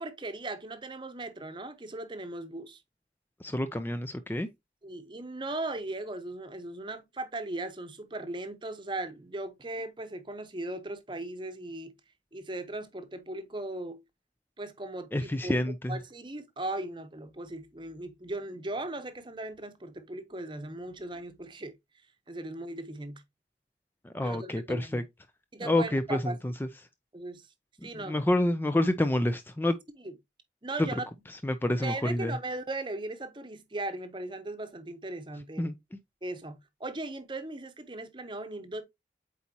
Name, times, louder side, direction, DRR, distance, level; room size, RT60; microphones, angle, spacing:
voice 1, 0.0-2.8 4.8-11.9 12.3-14.0 14.6-21.7 22.3-23.2 24.2-25.0 25.5-26.4 27.1-27.5 27.8-28.2 30.0-30.1 30.6-31.1 31.8-35.7 36.2-38.8, right 2 dB, 25° right, 0.8 m, -38 dB
voice 2, 3.4-4.5 15.1-16.0 24.0-25.0 25.6-26.5 27.9-29.8 31.4-32.4 35.6-36.0, left 1 dB, 10° left, 0.4 m, -28 dB
8.2 x 4.2 x 2.8 m
head